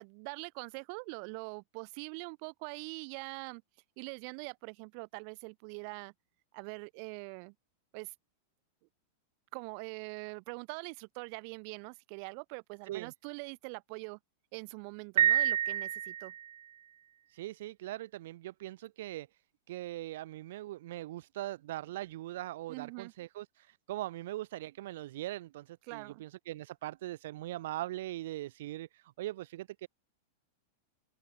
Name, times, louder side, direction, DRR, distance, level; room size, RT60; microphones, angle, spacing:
voice 1, 0.0-3.6 4.0-6.1 6.5-7.5 7.9-8.1 9.5-14.2 14.5-16.3 22.7-23.1 25.9-26.2, right 40 dB or more, 50° right, 3.8 m, -43 dB
Piano, 15.2-16.6, right 11 dB, 85° right, 0.5 m, -28 dB
voice 2, 17.3-19.3 19.7-29.9, right 15 dB, 70° right, 1.5 m, -41 dB
supercardioid pair, 140°, 0 cm